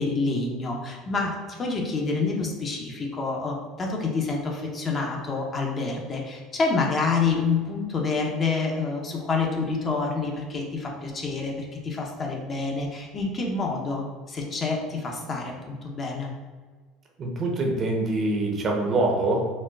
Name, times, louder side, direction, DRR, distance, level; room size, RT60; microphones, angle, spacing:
voice 1, 0.0-16.3, left 4 dB, 35° left, 0 dB, 0.6 m, -28 dB
voice 2, 17.2-19.5, right 2 dB, 40° right, 1 dB, 0.7 m, -24 dB
4.1 x 2.2 x 2.3 m, 1.4 s
supercardioid pair, 90°, 0 cm